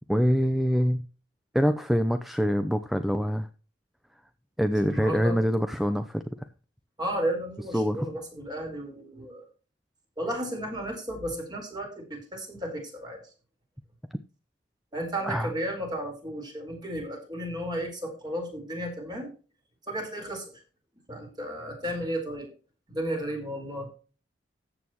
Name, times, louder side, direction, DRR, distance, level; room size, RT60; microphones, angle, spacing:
voice 1, 0.1-1.1 1.5-3.5 4.6-6.5 7.7-8.1 15.2-15.5, equal, ahead, 9 dB, 0.6 m, -25 dB
voice 2, 4.9-5.4 7.0-9.4 10.2-13.2 14.9-19.3 19.9-20.4 21.1-22.5 22.9-23.9, equal, 25° right, 2 dB, 4.7 m, -33 dB
14.0 x 8.6 x 3.1 m, 0.36 s
head